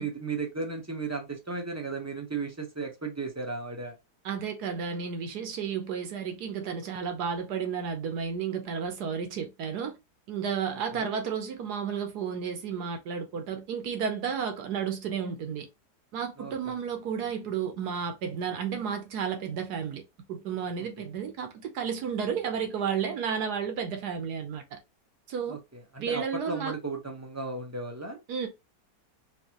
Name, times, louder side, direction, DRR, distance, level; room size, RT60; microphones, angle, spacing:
voice 1, 0.0-3.9 10.7-11.1 16.4-16.7 25.5-28.2, right 4 dB, 15° right, 0.5 m, -35 dB
voice 2, 4.2-9.9 10.3-15.7 16.1-20.0 20.3-24.8 25.3-25.6 26.0-26.7 28.3-28.5, right 7 dB, 70° right, 1.3 m, -32 dB
4.5 x 2.8 x 2.8 m
omnidirectional pair, 1.8 m